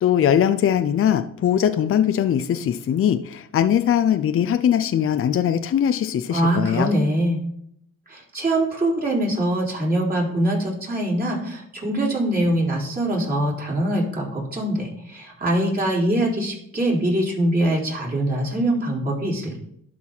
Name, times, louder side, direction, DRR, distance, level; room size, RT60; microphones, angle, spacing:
voice 1, 0.0-6.9, left 9 dB, 45° left, 9 dB, 0.6 m, -20 dB
voice 2, 6.3-7.4 8.1-19.6, right 1 dB, 30° right, -4 dB, 4.0 m, -23 dB
11.5 x 4.7 x 4.0 m, 0.69 s
cardioid pair, 90°, 30 cm